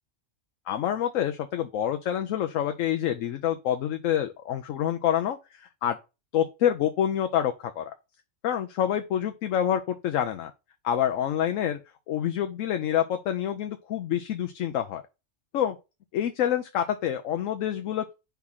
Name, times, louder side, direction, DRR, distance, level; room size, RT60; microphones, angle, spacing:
voice 1, 0.7-6.0 6.3-7.9 8.4-10.5 10.8-11.8 12.1-15.0 15.5-15.8 16.1-18.1, left 10 dB, 90° left, 1.0 m, -27 dB
4.8 x 3.5 x 5.6 m
omnidirectional pair, 1.3 m